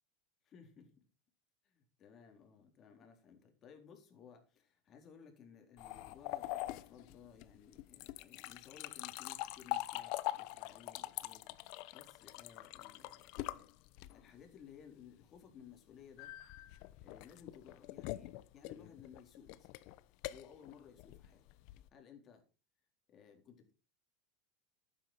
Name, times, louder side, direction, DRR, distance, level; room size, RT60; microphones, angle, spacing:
voice 1, 0.4-1.1 1.6-13.7 14.1-16.4 17.0-19.7 20.3-21.4 21.9-22.4 23.1-23.7, left 7 dB, 30° left, 3 dB, 4.0 m, -58 dB
sound 1, 5.8-14.4 16.2-21.9, left 16 dB, 55° left, 0.9 m, -44 dB
12.0 x 9.4 x 4.8 m, 0.34 s
supercardioid pair, 140°, 0 cm